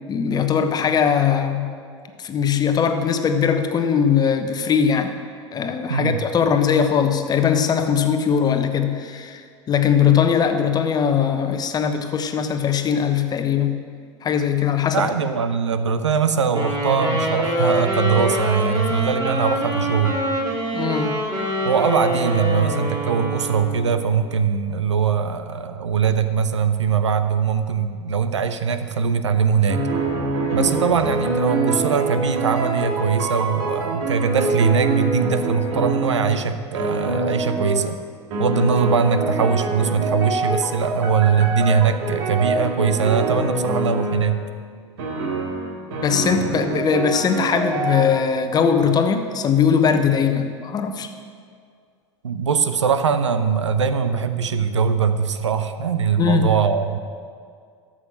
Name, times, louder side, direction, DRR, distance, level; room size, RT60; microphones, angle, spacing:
voice 1, 0.1-1.7 2.2-5.2 5.5-9.4 9.7-13.8 14.2-15.1 20.7-21.1 30.6-30.7 46.0-51.1 56.2-56.5, left 7 dB, 25° left, 7 dB, 1.0 m, -20 dB
voice 2, 5.9-6.2 14.9-20.2 21.6-29.8 30.5-38.0 38.4-44.4 52.2-57.0, right 6 dB, 75° right, 10 dB, 0.7 m, -21 dB
Wind instrument woodwind instrument, 16.5-24.0, equal, 25° right, 3.8 m, -24 dB
sound 1, 29.7-36.5 36.7-37.9 38.3-44.4 45.0-48.0, right 3 dB, 60° right, 2.1 m, -25 dB
13.0 x 7.4 x 6.3 m, 2.1 s
figure-of-eight pair, 80°, 15 cm